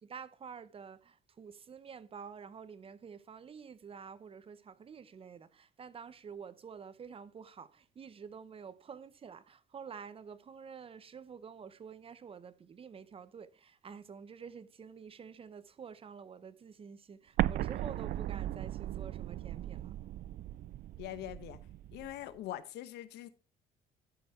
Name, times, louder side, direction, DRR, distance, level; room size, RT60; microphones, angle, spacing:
voice 1, 0.0-19.9, right 6 dB, 35° right, 0.8 m, -49 dB
Explosion, 17.4-22.1, right 13 dB, 60° right, 0.4 m, -37 dB
voice 2, 21.0-21.6 21.9-23.3, left 13 dB, 80° left, 1.0 m, -43 dB
12.5 x 5.2 x 4.4 m
cardioid pair, 110°, 17 cm